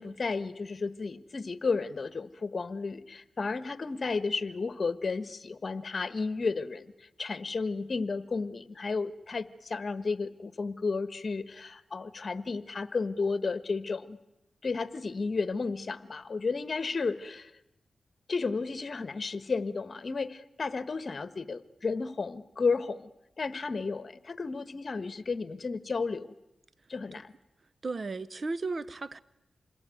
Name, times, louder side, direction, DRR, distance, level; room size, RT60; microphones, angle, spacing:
voice 1, 0.0-14.2 14.6-17.5 18.3-23.1 23.4-26.3 26.9-27.3, left 4 dB, 55° left, 1.3 m, -33 dB
voice 2, 27.8-29.2, right 3 dB, 55° right, 1.0 m, -34 dB
27.0 x 21.0 x 9.2 m
cardioid pair, 50°, 0 cm